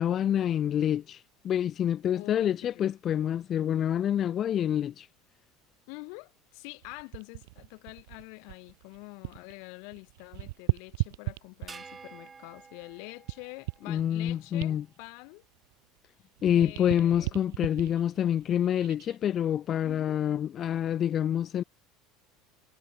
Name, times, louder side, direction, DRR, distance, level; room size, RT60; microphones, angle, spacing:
voice 1, 0.0-5.1 13.9-14.8 16.4-21.6, left 10 dB, 40° left, 0.4 m, -27 dB
voice 2, 2.1-2.8 5.9-15.4 16.5-17.4 19.8-20.2, left 40 dB or more, 70° left, 3.2 m, -46 dB
sound 1, 6.8-9.6 9.8-12.0 12.5-16.1 16.4-19.2 19.7-19.9, right 24 dB, 85° right, 0.7 m, -37 dB
sound 2, 11.7-14.2, right 5 dB, 20° right, 2.7 m, -49 dB
supercardioid pair, 125°, 0 cm